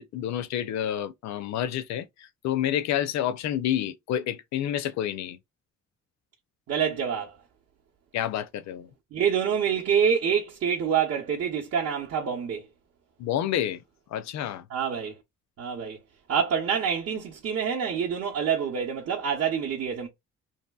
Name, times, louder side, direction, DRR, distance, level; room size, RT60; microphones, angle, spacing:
voice 1, 0.0-5.4 8.1-8.9 13.2-13.8 14.1-14.6, left 11 dB, 65° left, 0.5 m, -29 dB
voice 2, 6.7-7.4 9.1-12.7 14.7-15.2 15.6-16.0 16.3-20.1, right 7 dB, 55° right, 0.7 m, -26 dB
2.7 x 2.5 x 2.2 m
cardioid pair, 90°, 30 cm